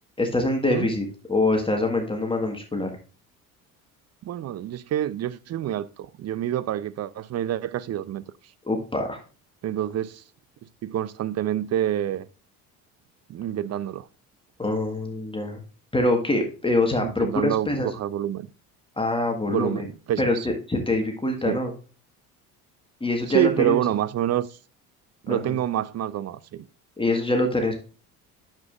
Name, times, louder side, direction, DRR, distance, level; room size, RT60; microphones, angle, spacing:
voice 1, 0.2-2.9 8.7-9.2 14.6-15.6 15.9-17.9 19.0-19.9 20.2-21.7 23.0-23.8 25.3-25.6 27.0-27.8, left 2 dB, 10° left, 1.6 m, -24 dB
voice 2, 4.2-8.2 9.6-10.2 10.8-12.3 13.3-14.1 17.0-18.5 19.5-20.5 21.4-21.6 23.3-24.6 25.2-26.7, right 11 dB, 35° right, 0.6 m, -27 dB
9.3 x 7.3 x 2.5 m
hypercardioid pair, 60°, 44 cm